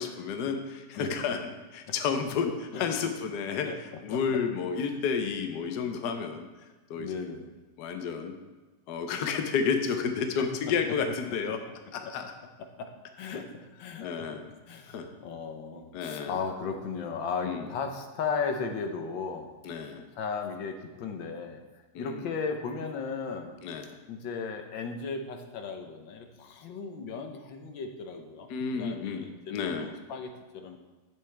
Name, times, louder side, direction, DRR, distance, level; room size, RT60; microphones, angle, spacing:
voice 1, 0.0-1.4 1.7-6.5 6.9-7.1 7.8-8.3 8.9-11.6 11.9-12.2 13.3-13.4 14.0-14.5 14.9-15.1 15.9-16.4 17.4-17.7 19.6-20.0 21.9-22.2 23.6-23.9 28.5-29.2 29.5-29.9, left 6 dB, 65° left, 6 dB, 1.3 m, -31 dB
voice 2, 4.1-4.4 4.8-5.0 6.9-7.5 10.4-10.5 11.3-11.4 12.0-12.1 12.6-13.5 13.8-14.3 14.7-19.5 20.1-21.6 22.0-23.6 24.1-30.8, left 5 dB, 85° left, 5 dB, 1.7 m, -36 dB
10.5 x 7.7 x 3.4 m, 1.2 s
omnidirectional pair, 2.0 m